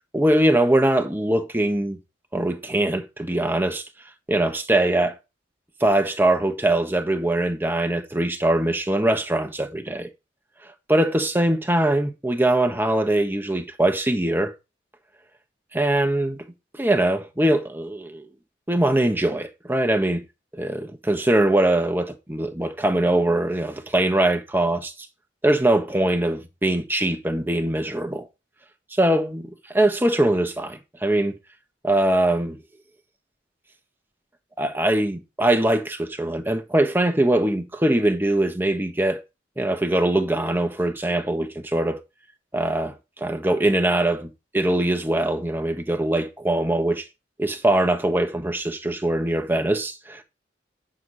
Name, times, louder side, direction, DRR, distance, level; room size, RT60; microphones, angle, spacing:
voice 1, 0.1-2.0 2.3-3.8 4.3-5.1 5.8-10.1 10.9-14.5 15.7-16.5 16.8-18.3 18.7-20.2 20.5-24.9 25.4-28.3 29.0-31.4 31.8-32.6 34.6-39.2 39.6-42.0 42.5-47.0 47.4-50.2, right 1 dB, 10° right, 1.3 m, -22 dB
9.6 x 6.4 x 4.1 m
head